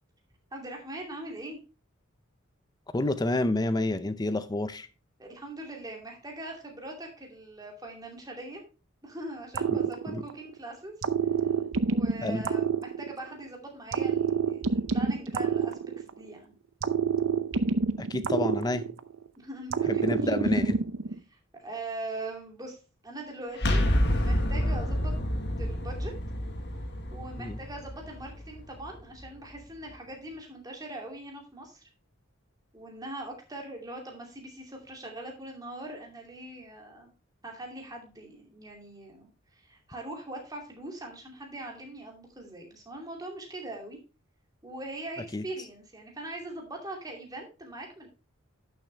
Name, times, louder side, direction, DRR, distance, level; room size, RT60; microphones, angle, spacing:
voice 1, 0.5-1.6 5.2-8.6 9.0-11.0 11.8-16.5 19.4-20.6 21.3-22.8 23.0-25.2 25.6-26.1 27.1-31.8 32.7-37.1 37.4-44.0 44.6-48.1, right 1 dB, 20° right, 1 dB, 2.6 m, -41 dB
voice 2, 2.9-4.9 9.7-9.8 10.1-10.2 12.2-12.4 18.0-18.9 19.9-20.8 27.4-27.6 45.3-45.4, left 2 dB, 20° left, 13 dB, 0.5 m, -29 dB
sound 1, 9.5-10.5 11.0-13.4 13.9-16.3 16.8-19.2 19.7-21.2, right 5 dB, 70° right, 0.7 m, -28 dB
sound 2, 23.6-29.3, equal, 55° left, 1.6 m, -29 dB
11.0 x 7.1 x 3.2 m, 0.32 s
head